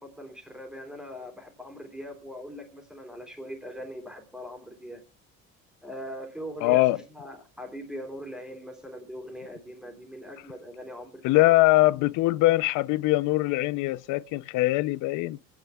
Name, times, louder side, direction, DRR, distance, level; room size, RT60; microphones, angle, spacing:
voice 1, 0.0-5.0 5.8-11.5, equal, ahead, 3.0 m, -41 dB
voice 2, 6.6-7.0 11.2-15.4, left 19 dB, 75° left, 0.6 m, -22 dB
24.0 x 9.5 x 2.3 m
cardioid pair, 125°, 31 cm